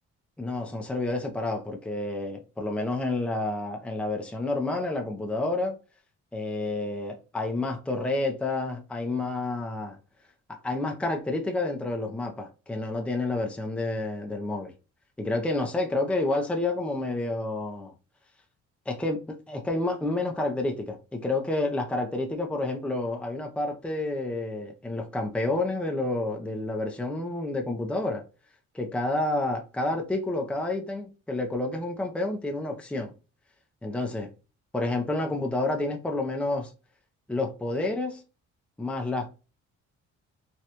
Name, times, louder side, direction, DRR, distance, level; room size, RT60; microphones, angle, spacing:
voice 1, 0.4-5.8 6.3-10.0 10.5-14.7 15.2-17.9 18.9-28.2 28.7-33.1 33.8-34.3 34.7-36.7 37.3-38.2 38.8-39.4, left 2 dB, 5° left, 0.6 m, -29 dB
3.2 x 2.4 x 2.9 m
cardioid pair, 90°, 30 cm